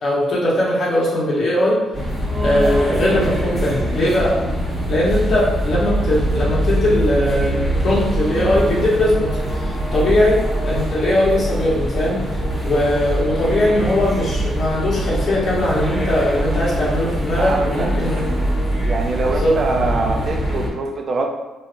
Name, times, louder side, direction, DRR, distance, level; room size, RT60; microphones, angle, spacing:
voice 1, 0.0-1.8 2.4-4.4 4.9-18.3 19.4-19.5, left 1 dB, 60° left, -5 dB, 1.1 m, -20 dB
sound 1, 1.9-20.7, right 1 dB, 10° right, 1.0 m, -23 dB
voice 2, 17.4-17.9 18.8-21.3, right 3 dB, 50° right, 3 dB, 0.4 m, -23 dB
3.0 x 2.7 x 2.5 m, 1.2 s
cardioid pair, 90°, 0 cm